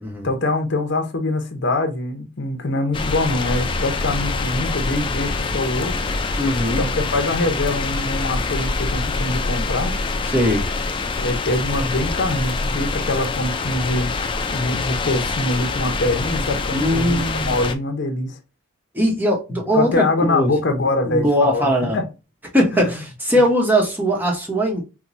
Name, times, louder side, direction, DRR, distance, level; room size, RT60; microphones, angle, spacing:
voice 1, 0.2-6.0 6.8-9.9 11.2-14.1 14.5-18.4 19.7-22.0 22.7-22.9, left 2 dB, 60° left, 0.8 m, -23 dB
sound 1, 2.9-17.7, left 3 dB, 25° left, 0.4 m, -25 dB
voice 2, 6.4-6.8 10.3-10.6 16.7-17.6 18.9-20.5 21.0-22.0 22.5-24.8, equal, 10° right, 1.0 m, -20 dB
4.6 x 2.2 x 2.6 m
head